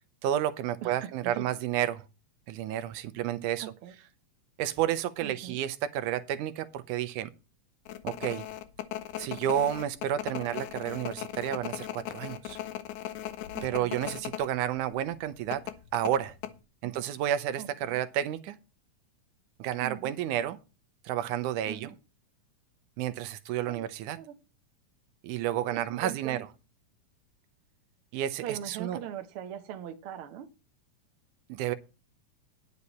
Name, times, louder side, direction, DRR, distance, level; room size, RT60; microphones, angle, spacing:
voice 1, 0.2-2.0 2.5-3.7 4.6-7.3 8.0-8.5 9.2-12.6 13.6-15.6 15.9-16.3 16.8-18.6 19.6-20.6 21.1-21.9 23.0-24.2 25.2-26.5 28.1-29.0 31.5-31.8, right 11 dB, 80° right, 2.1 m, -31 dB
voice 2, 0.8-1.5 3.8-3.9 5.2-5.6 13.5-14.0 16.8-16.9 17.6-18.0 19.8-20.1 21.7-21.9 23.7-23.8 24.1-24.4 25.6-26.4 28.4-30.5, right 10 dB, 65° right, 1.4 m, -41 dB
sound 1, 7.9-14.5 14.8-14.9 15.5-16.5, left 12 dB, 80° left, 2.2 m, -38 dB
9.9 x 9.5 x 4.2 m
omnidirectional pair, 3.6 m